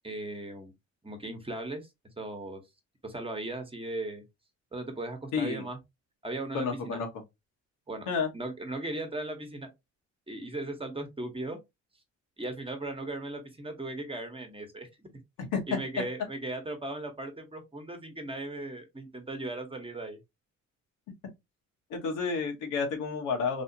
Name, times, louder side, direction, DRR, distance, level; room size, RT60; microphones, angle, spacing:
voice 1, 0.0-0.7 1.0-1.9 2.2-2.6 3.0-4.2 4.7-5.8 6.2-7.0 7.9-8.1 8.3-9.7 10.3-11.6 12.4-15.1 15.7-20.2, right 2 dB, 20° right, 1.1 m, -37 dB
voice 2, 5.3-5.6 6.5-7.1 8.1-8.3 15.4-15.8 21.9-23.6, left 5 dB, 90° left, 1.3 m, -30 dB
3.2 x 2.8 x 2.7 m
cardioid pair, 90°, 30 cm